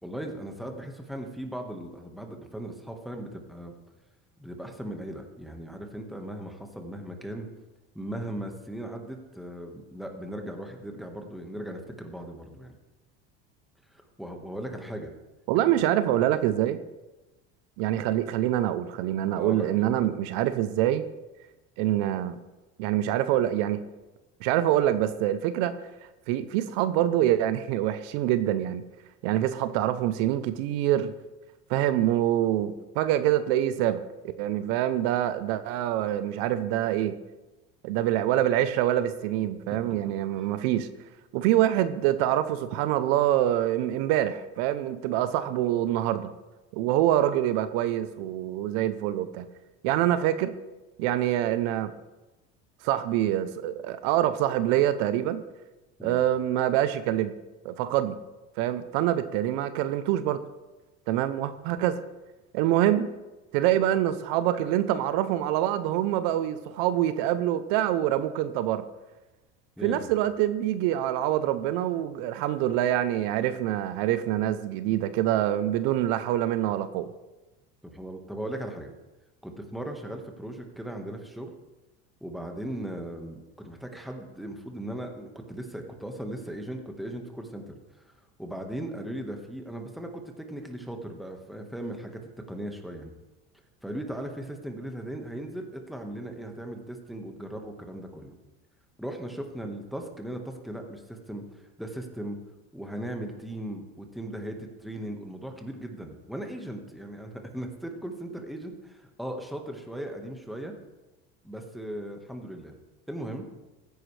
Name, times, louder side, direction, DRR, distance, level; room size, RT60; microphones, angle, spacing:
voice 1, 0.0-3.7 4.4-7.5 7.9-12.7 14.2-15.1 19.4-20.0 39.7-39.8 56.0-56.2 69.8-70.1 77.8-78.9 79.4-81.5 82.2-88.0 88.4-92.2 92.5-93.1 93.8-98.3 99.0-102.4 102.7-110.7 111.4-112.7 113.1-113.5, right 1 dB, ahead, 3 dB, 1.5 m, -38 dB
voice 2, 15.5-16.8 17.8-21.0 21.8-22.4 22.8-23.8 24.4-25.7 26.3-28.8 29.2-31.1 31.7-34.0 34.4-37.2 37.8-40.9 41.3-46.3 46.7-49.5 49.8-50.5 51.0-51.9 52.8-55.4 56.0-57.3 57.6-58.2 58.6-60.4 61.1-62.0 62.5-63.1 63.5-68.9 69.8-77.1, right 12 dB, 75° right, 12 dB, 0.8 m, -25 dB
15.0 x 9.5 x 3.3 m, 1.1 s
supercardioid pair, 115°, 31 cm